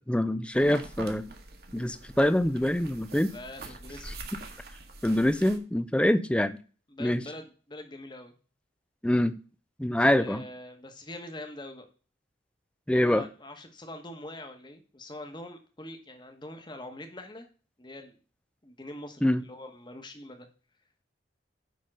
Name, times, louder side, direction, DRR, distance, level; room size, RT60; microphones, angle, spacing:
voice 1, 0.1-1.3 1.7-3.3 4.1-4.2 5.0-6.6 7.0-7.2 9.0-9.3 9.8-10.4 12.9-13.2 19.2-19.4, left 1 dB, 5° left, 0.4 m, -25 dB
sound 1, 0.5-5.6, right 3 dB, 55° right, 1.3 m, -44 dB
voice 2, 3.3-4.2 6.9-8.3 10.1-11.9 12.9-17.5 17.8-18.2 18.6-20.5, left 1 dB, 25° left, 1.2 m, -44 dB
9.4 x 3.8 x 6.1 m
head